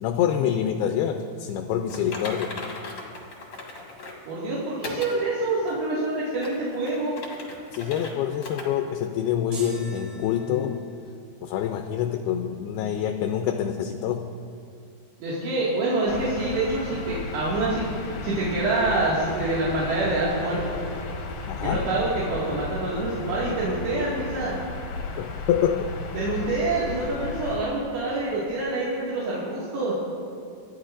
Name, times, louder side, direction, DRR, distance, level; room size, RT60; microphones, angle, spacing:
voice 1, 0.0-2.6 7.7-10.8 11.4-14.3 21.5-21.9 25.2-26.0, left 9 dB, 80° left, 6 dB, 2.4 m, -26 dB
Typing, 1.9-4.2 4.8-5.2 5.7-5.8 6.3-8.1 8.4-8.7 9.0-9.1 9.7-9.8, left 3 dB, 45° left, 1.6 m, -38 dB
voice 2, 4.3-7.2 15.2-17.9 18.2-20.8 21.6-24.6 26.2-29.9, right 2 dB, 75° right, -8 dB, 4.1 m, -26 dB
sound 1, 9.5-11.1, right 2 dB, 55° right, 4.2 m, -42 dB
sound 2, 16.1-27.6, left 3 dB, 65° left, 1.9 m, -34 dB
26.0 x 11.0 x 2.5 m, 2.3 s
omnidirectional pair, 4.9 m